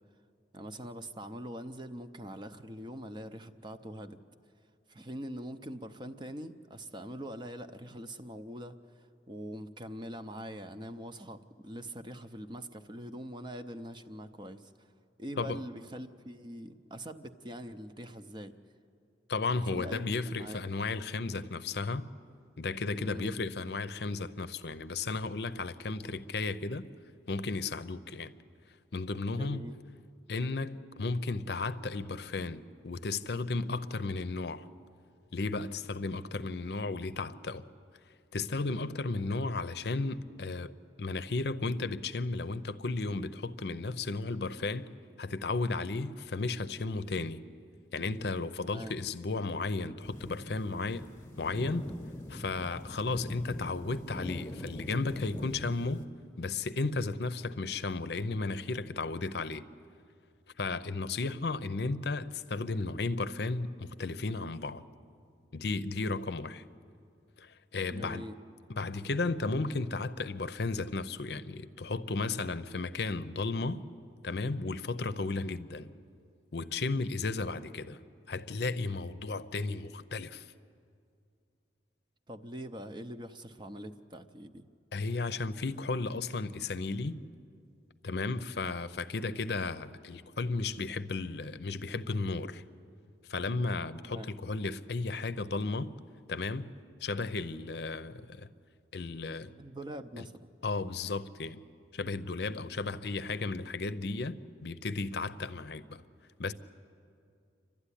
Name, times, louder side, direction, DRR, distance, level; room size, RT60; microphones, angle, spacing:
voice 1, 0.5-4.2 4.9-14.9 15.2-18.5 19.7-20.6 23.0-23.3 29.3-29.7 48.6-48.9 67.9-68.4 82.3-84.6 94.0-94.3 99.6-100.5, equal, 25° right, 0.7 m, -43 dB
voice 2, 19.3-22.0 22.6-26.9 27.3-28.3 28.9-29.7 30.3-34.7 35.3-37.6 38.3-40.7 41.0-44.9 45.2-47.4 47.9-51.1 51.4-51.9 52.3-56.1 56.4-59.7 60.6-64.8 65.5-66.6 67.4-68.2 68.7-73.8 74.2-75.9 76.5-78.0 78.3-80.5 84.9-87.2 88.0-92.6 93.3-95.9 96.3-96.7 97.0-98.5 98.9-99.5 100.2-100.3 100.6-101.6 101.9-106.0 106.4-106.5, left 3 dB, 60° left, 0.7 m, -34 dB
sound 1, 50.0-56.1, left 1 dB, 15° left, 1.0 m, -43 dB
29.0 x 12.5 x 9.9 m
head